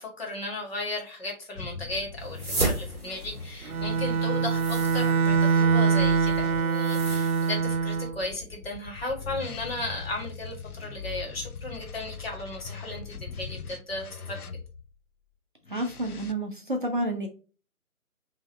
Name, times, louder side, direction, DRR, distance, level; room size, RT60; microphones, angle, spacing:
voice 1, 0.0-14.4, left 2 dB, 40° left, 0 dB, 1.7 m, -35 dB
sound 1, 1.5-6.6 7.6-14.9 15.7-16.3, left 6 dB, 85° left, 0.7 m, -41 dB
sound 2, 2.2-7.6, right 2 dB, 5° right, 1.3 m, -35 dB
Bowed string instrument, 3.6-8.2, right 6 dB, 75° right, 0.6 m, -24 dB
voice 2, 15.7-17.3, right 1 dB, 35° right, 2 dB, 0.7 m, -29 dB
5.6 x 2.8 x 3.0 m, 0.36 s
figure-of-eight pair, 150°, 44 cm